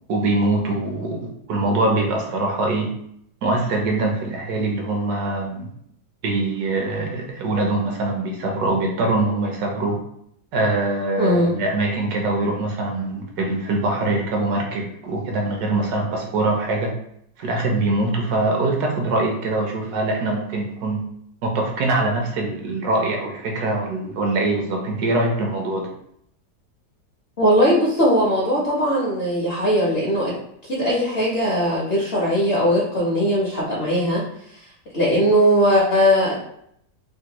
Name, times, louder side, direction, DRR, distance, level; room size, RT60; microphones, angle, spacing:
voice 1, 0.1-2.9 3.4-5.7 6.2-10.0 10.5-16.9 17.4-21.0 21.4-25.9, right 2 dB, 70° right, 1 dB, 1.1 m, -23 dB
voice 2, 11.2-11.5 27.4-30.3 30.6-34.2 34.9-36.3, equal, 55° left, -5 dB, 0.7 m, -19 dB
3.4 x 2.1 x 2.9 m, 0.71 s
omnidirectional pair, 1.8 m